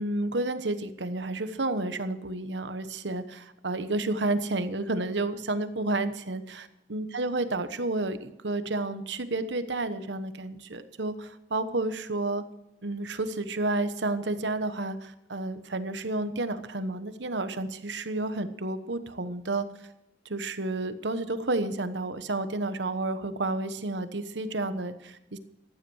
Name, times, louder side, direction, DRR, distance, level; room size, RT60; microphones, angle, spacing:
voice 1, 0.0-6.6 6.9-12.4 12.8-19.7 20.2-25.4, right 2 dB, 80° right, 11 dB, 1.2 m, -31 dB
15.0 x 11.0 x 6.4 m, 0.88 s
head